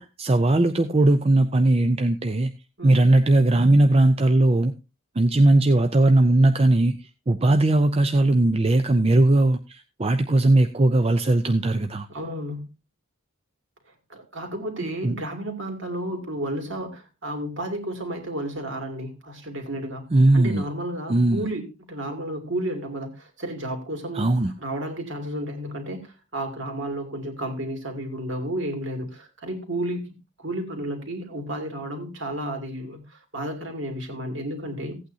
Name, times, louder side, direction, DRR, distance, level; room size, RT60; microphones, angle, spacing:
voice 1, 0.0-2.5 2.8-4.7 5.2-7.0 7.3-12.1 15.0-15.1 20.1-20.6 21.1-21.4 24.1-24.5, right 2 dB, 25° right, 0.5 m, -19 dB
voice 2, 12.1-12.7 14.1-20.0 20.3-30.1 30.4-35.0, right 1 dB, 55° right, 2.7 m, -32 dB
16.0 x 8.8 x 2.7 m
head